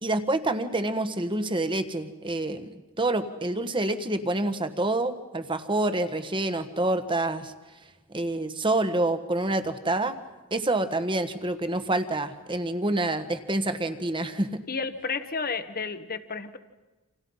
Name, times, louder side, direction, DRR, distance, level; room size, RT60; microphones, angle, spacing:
voice 1, 0.0-7.5 8.1-10.2 10.5-14.6, right 2 dB, 25° right, 9 dB, 1.5 m, -27 dB
voice 2, 14.7-16.6, left 4 dB, 45° left, 10 dB, 1.4 m, -31 dB
29.0 x 27.5 x 5.7 m, 1.1 s
head